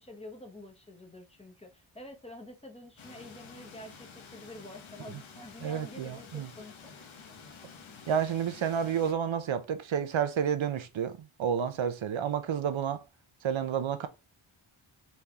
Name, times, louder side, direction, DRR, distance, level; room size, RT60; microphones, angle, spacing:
voice 1, 0.0-7.1, left 1 dB, 10° left, 1.1 m, -48 dB
sound 1, 3.0-9.1, left 5 dB, 65° left, 1.0 m, -50 dB
voice 2, 5.6-6.5 8.1-13.0 13.4-14.1, right 8 dB, 65° right, 0.8 m, -30 dB
4.2 x 3.5 x 3.5 m
wide cardioid pair, 140°, 50 cm